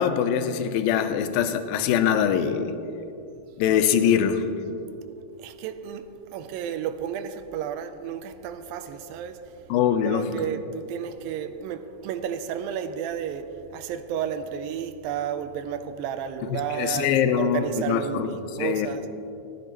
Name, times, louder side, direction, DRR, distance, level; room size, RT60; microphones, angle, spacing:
voice 1, 0.0-2.8 3.6-4.4 9.7-10.3 16.5-18.3 18.6-18.9, left 8 dB, 80° left, 2.4 m, -23 dB
voice 2, 5.4-9.5 10.0-19.1, right 8 dB, 80° right, 2.3 m, -32 dB
18.5 x 13.5 x 3.0 m
omnidirectional pair, 4.3 m